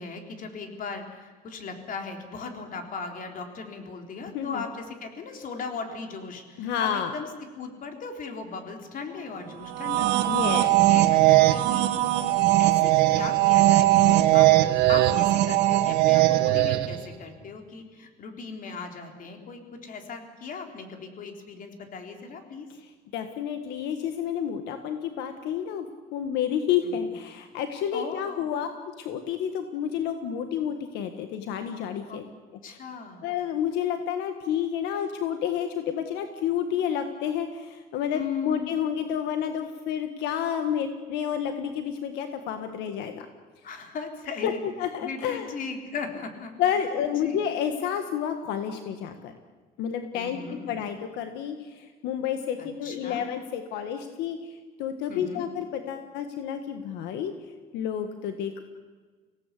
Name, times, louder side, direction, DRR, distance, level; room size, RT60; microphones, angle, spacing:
voice 1, 0.0-7.3 7.6-11.9 12.6-14.5 14.9-22.7 26.8-27.1 27.9-28.5 32.1-32.2 32.6-33.2 38.1-38.7 43.6-44.6 45.0-46.5 47.1-47.4 50.1-50.8 52.6-53.2 55.1-55.5, left 4 dB, 55° left, 4 dB, 3.9 m, -38 dB
voice 2, 6.6-7.1 10.3-10.7 22.8-28.7 29.0-32.2 32.7-32.8 33.2-43.3 44.4-44.5 44.8-45.5 46.6-49.3 49.8-57.3 57.7-58.6, left 9 dB, 90° left, 7 dB, 1.6 m, -30 dB
sound 1, 9.7-17.1, right 16 dB, 90° right, 1.4 m, -20 dB
25.0 x 17.5 x 8.4 m, 1.4 s
cardioid pair, 110°, 17 cm